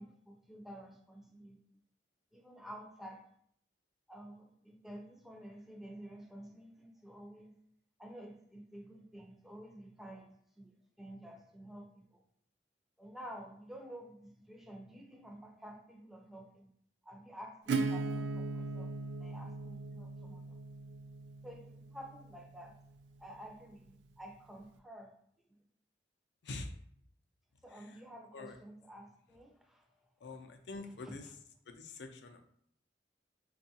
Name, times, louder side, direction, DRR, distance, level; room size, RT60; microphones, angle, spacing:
voice 1, 0.0-1.6 2.3-3.2 4.1-7.5 8.0-12.2 13.0-16.7 17.0-18.9 19.2-20.5 21.4-22.8 23.2-25.1 27.6-30.4 30.8-31.4, right 1 dB, ahead, 2 dB, 0.5 m, -51 dB
Acoustic guitar / Strum, 17.7-23.2, right 3 dB, 80° right, 0.4 m, -39 dB
voice 2, 30.2-31.2 31.7-32.4, left 3 dB, 70° left, 5 dB, 0.5 m, -45 dB
5.2 x 2.3 x 2.7 m, 0.67 s
head